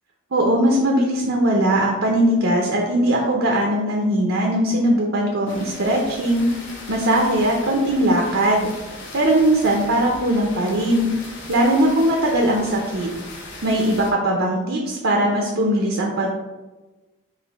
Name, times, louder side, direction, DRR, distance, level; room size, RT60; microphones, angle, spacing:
voice 1, 0.3-6.5 6.9-8.7 9.1-11.1 11.5-13.1 13.6-16.3, right 1 dB, 60° right, -1 dB, 0.6 m, -20 dB
sound 1, 5.5-14.1, left 2 dB, 55° left, 0.8 m, -38 dB
4.9 x 2.6 x 4.0 m, 1.1 s
head